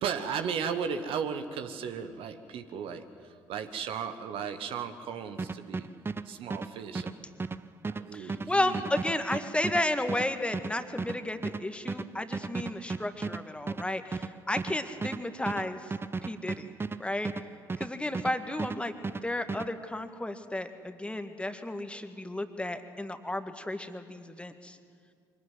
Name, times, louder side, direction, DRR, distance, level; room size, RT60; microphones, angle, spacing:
voice 1, 0.0-5.9 6.2-7.4 7.8-8.8, right 7 dB, 55° right, 9 dB, 1.4 m, -35 dB
sound 1, 5.4-18.3 18.6-19.7, right 4 dB, 20° right, 0.8 m, -35 dB
voice 2, 8.1-15.9 16.3-16.7 17.0-17.3 17.8-19.0 19.2-24.8, left 1 dB, 10° left, 8 dB, 1.9 m, -33 dB
24.0 x 18.0 x 9.4 m, 2.1 s
figure-of-eight pair, 50°, 11 cm